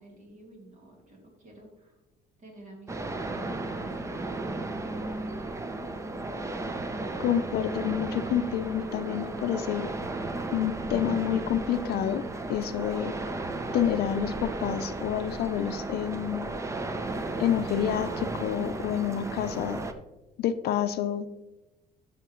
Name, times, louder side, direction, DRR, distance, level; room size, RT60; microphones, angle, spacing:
voice 1, 0.0-1.9 2.4-5.9, right 1 dB, 45° right, -1 dB, 3.2 m, -50 dB
sound 1, 2.9-19.9, right 2 dB, 15° right, 0.7 m, -34 dB
voice 2, 7.2-9.9 10.5-12.2 12.5-13.1 13.7-16.4 17.4-19.8 20.4-21.3, left 10 dB, 70° left, 11 dB, 0.6 m, -28 dB
12.5 x 5.9 x 3.1 m, 1.0 s
cardioid pair, 110°, 17 cm